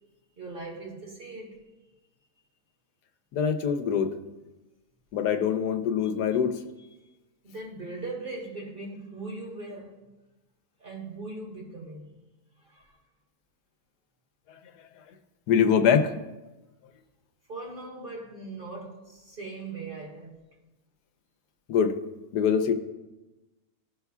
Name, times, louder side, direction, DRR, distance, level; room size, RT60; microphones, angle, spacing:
voice 1, 0.4-1.6 7.4-10.0 10.8-12.3 12.6-12.9 17.5-20.4, right 3 dB, 35° right, 1.5 m, -39 dB
voice 2, 3.3-4.1 5.1-6.6 15.5-16.1 21.7-22.0 22.3-22.7, left 7 dB, 90° left, 1.3 m, -23 dB
16.5 x 5.6 x 2.3 m
omnidirectional pair, 1.6 m